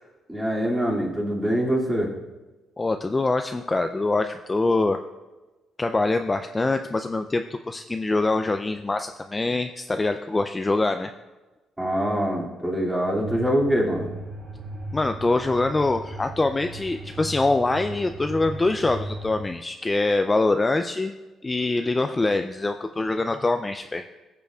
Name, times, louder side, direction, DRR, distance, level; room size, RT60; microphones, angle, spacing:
voice 1, 0.3-2.1 11.8-14.1, equal, 10° right, -3 dB, 2.3 m, -24 dB
voice 2, 2.8-5.0 5.8-11.1 14.9-21.1 21.4-24.0, left 2 dB, 20° left, 7 dB, 0.4 m, -24 dB
sound 1, 13.1-19.4, right 2 dB, 45° right, 1.6 m, -37 dB
15.0 x 6.8 x 2.3 m, 1.2 s
cardioid pair, 90°, 0 cm